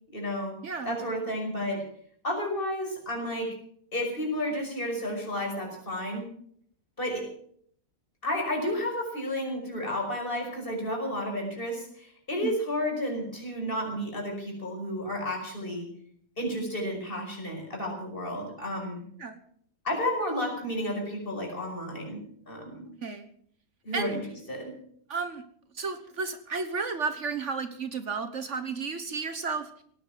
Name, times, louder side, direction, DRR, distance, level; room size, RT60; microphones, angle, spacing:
voice 1, 0.1-0.6 0.8-1.8 2.2-3.5 3.9-6.3 7.0-7.3 8.2-15.9 16.4-19.0 19.8-22.9 23.8-24.2 24.5-24.8, left 1 dB, 40° left, 1 dB, 5.9 m, -32 dB
voice 2, 0.6-1.0 12.4-12.6 19.2-19.4 23.0-23.3 23.9-24.2 25.1-25.4 25.7-29.7, right 4 dB, 60° right, 10 dB, 1.5 m, -32 dB
18.0 x 10.5 x 7.4 m, 0.62 s
omnidirectional pair, 1.5 m